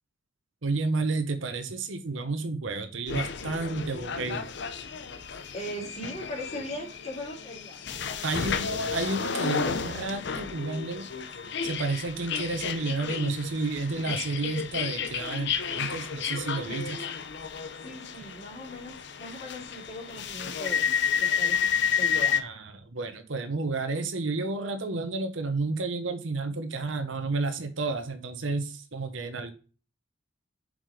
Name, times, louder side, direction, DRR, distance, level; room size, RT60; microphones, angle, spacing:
voice 1, 0.6-4.4 8.2-11.1 11.6-17.0 22.3-29.5, right 3 dB, 70° right, 8 dB, 0.9 m, -31 dB
sound 1, 3.1-22.4, left 7 dB, 60° left, 0.7 m, -31 dB
voice 2, 5.5-8.2 17.8-20.9 21.2-22.4, left 1 dB, 35° left, -1 dB, 3.2 m, -39 dB
7.5 x 5.0 x 5.0 m, 0.36 s
head